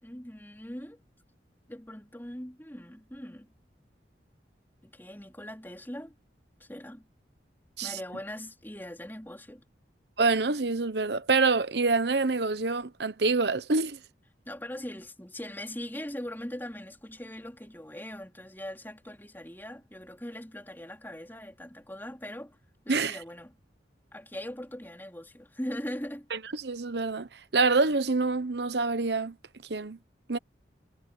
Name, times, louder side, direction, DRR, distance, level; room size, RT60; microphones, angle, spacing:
voice 1, 0.0-1.0 1.7-3.5 4.8-6.1 6.6-7.1 7.8-9.6 14.5-22.6 22.8-23.5 24.1-26.3, left 1 dB, 10° left, 3.9 m, -40 dB
voice 2, 10.2-14.0 22.9-23.2 26.3-29.3 29.7-30.0 30.3-30.4, right 3 dB, 65° right, 1.0 m, -26 dB
head